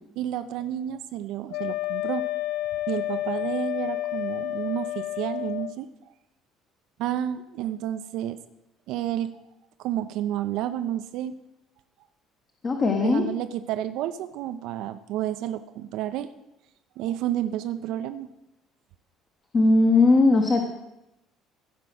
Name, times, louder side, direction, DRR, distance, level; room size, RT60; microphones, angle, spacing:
voice 1, 0.2-2.2 2.9-5.9 7.0-8.4 8.9-9.3 9.8-11.4 12.9-16.3 17.0-18.3, right 11 dB, 60° right, 10 dB, 0.5 m, -30 dB
Wind instrument woodwind instrument, 1.5-5.8, left 15 dB, 60° left, 0.4 m, -30 dB
voice 2, 12.6-13.2 19.5-20.6, left 3 dB, 40° left, 3 dB, 1.4 m, -19 dB
15.5 x 6.0 x 6.0 m, 0.92 s
figure-of-eight pair, 55°, 0 cm